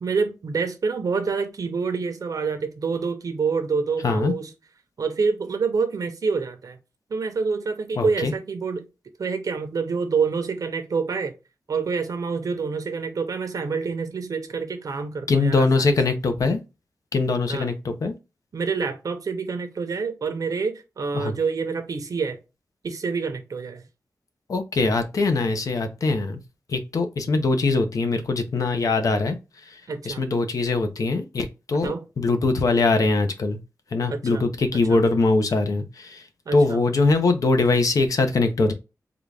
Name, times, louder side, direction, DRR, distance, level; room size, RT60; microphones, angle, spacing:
voice 1, 0.0-4.5 5.0-6.8 7.1-8.9 9.2-11.3 11.7-16.0 17.5-17.7 18.5-22.4 22.8-23.8 29.9-30.2 31.7-32.0 34.1-34.5 34.9-35.0 36.5-36.8, right 5 dB, 60° right, 0.7 m, -27 dB
voice 2, 4.0-4.3 8.0-8.3 15.3-16.6 17.1-18.2 21.1-21.3 24.5-26.4 26.7-29.4 29.7-33.6 33.9-36.2 36.5-38.7, left 3 dB, 60° left, 0.6 m, -22 dB
3.8 x 2.3 x 3.2 m
wide cardioid pair, 135°, 7 cm